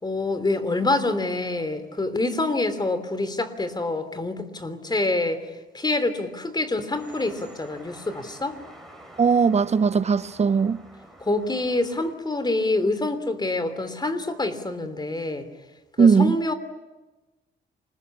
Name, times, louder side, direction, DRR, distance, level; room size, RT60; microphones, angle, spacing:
voice 1, 0.0-5.5 5.7-8.6 11.2-15.5 16.0-16.5, left 2 dB, 20° left, 3.3 m, -26 dB
sound 1, 6.9-12.1, right 1 dB, ahead, 5.6 m, -48 dB
voice 2, 9.2-10.8 16.0-16.4, right 5 dB, 35° right, 0.8 m, -19 dB
28.0 x 21.0 x 9.9 m
cardioid pair, 90°, 20 cm